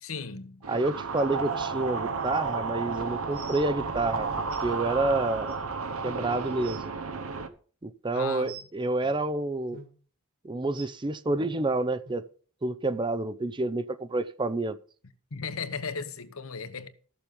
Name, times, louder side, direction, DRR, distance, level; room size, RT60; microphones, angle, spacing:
voice 1, 0.0-0.6 8.1-8.6 15.3-16.9, left 5 dB, 70° left, 1.1 m, -36 dB
sound 1, 0.6-7.5, right 4 dB, 70° right, 1.0 m, -32 dB
voice 2, 0.7-4.3 4.6-5.6 6.0-6.8 7.8-9.8 10.4-12.3 12.6-14.8, right 2 dB, 20° right, 0.5 m, -28 dB
sound 2, 3.3-3.6 4.5-4.6 5.5-5.6 6.1-6.2 6.5-6.8 8.5-8.7 9.7-9.9 10.7-10.9 12.0-12.1 12.9-13.0 13.7-13.8, right 5 dB, 45° right, 2.3 m, -46 dB
13.0 x 7.1 x 5.3 m
head